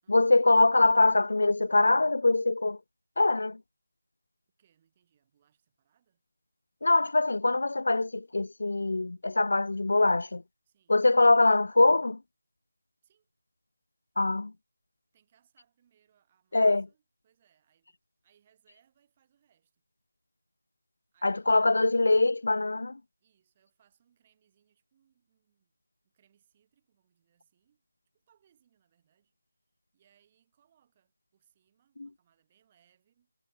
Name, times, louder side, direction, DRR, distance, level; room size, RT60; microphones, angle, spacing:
voice 1, 0.1-2.8 3.2-3.6 6.8-10.4 10.9-12.2 14.2-14.5 16.5-16.9 21.2-23.0 32.0-32.1, left 2 dB, 55° left, 0.3 m, -23 dB
voice 2, 4.6-6.2 10.7-11.0 13.0-13.3 15.1-18.0 18.2-19.8 21.1-22.3 23.2-25.7 26.0-27.9 28.1-29.4 29.9-33.3, right 9 dB, 20° right, 6.9 m, -70 dB
figure-of-eight pair, 160°, 0 cm